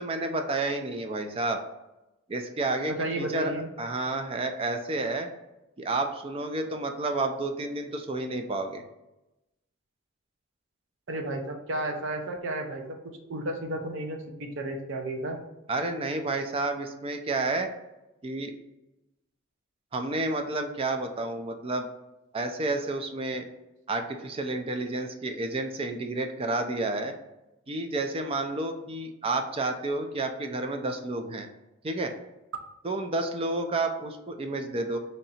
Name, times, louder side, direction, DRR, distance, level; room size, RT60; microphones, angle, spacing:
voice 1, 0.0-1.6 2.3-3.5 3.8-5.3 5.8-8.8 15.7-17.7 18.2-18.5 19.9-21.9 22.3-23.5 23.9-27.1 27.7-31.5 31.8-32.1 32.8-35.0, right 2 dB, 30° right, 6 dB, 0.4 m, -30 dB
voice 2, 2.9-3.7 11.1-13.0 13.3-15.4, right 1 dB, 65° right, 4 dB, 0.6 m, -33 dB
3.2 x 2.8 x 4.0 m, 0.97 s
head